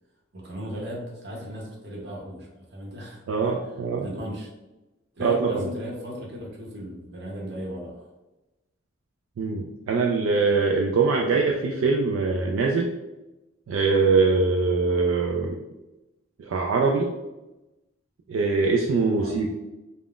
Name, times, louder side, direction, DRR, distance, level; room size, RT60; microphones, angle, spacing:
voice 1, 0.3-3.5 4.0-4.5 5.2-8.1 19.2-19.4, equal, 55° right, -1 dB, 0.8 m, -36 dB
voice 2, 3.3-4.1 5.2-5.6 9.4-12.9 13.7-15.6 16.4-17.1 18.3-19.5, right 4 dB, 80° right, 0 dB, 0.3 m, -23 dB
2.4 x 2.1 x 3.6 m, 1.0 s
head